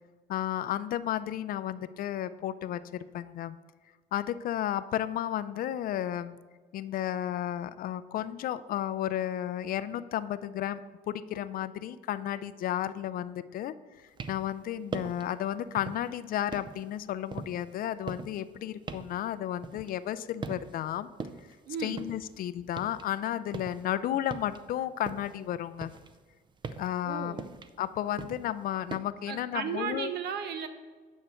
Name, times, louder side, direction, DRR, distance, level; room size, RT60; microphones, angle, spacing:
voice 1, 0.3-3.6 4.1-6.4 6.7-21.1 21.8-25.9 26.8-27.4 27.8-30.1, left 11 dB, 60° left, 15 dB, 0.4 m, -33 dB
sound 1, 14.0-14.6 14.9-15.3 15.8-16.1 16.5-20.2 20.4-20.9 21.2-23.1 23.4-25.4 25.8-29.0, right 4 dB, 25° right, 0.5 m, -41 dB
voice 2, 21.7-22.0 27.0-27.5 29.3-30.7, right 7 dB, 75° right, 9 dB, 0.8 m, -35 dB
9.0 x 6.4 x 4.3 m, 1.5 s
cardioid pair, 110°, 17 cm